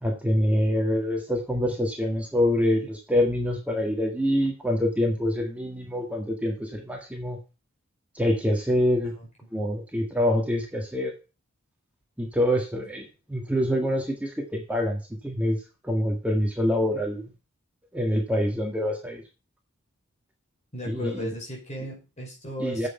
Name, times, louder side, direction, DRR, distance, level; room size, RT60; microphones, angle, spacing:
voice 1, 0.0-7.4 8.1-9.1 9.5-11.1 12.2-15.6 15.8-17.3 17.9-19.2 20.9-21.3 22.6-22.9, left 1 dB, 5° right, 0 dB, 1.7 m, -25 dB
voice 2, 20.7-22.9, equal, 35° left, 0 dB, 5.5 m, -36 dB
9.6 x 7.9 x 4.3 m, 0.31 s
head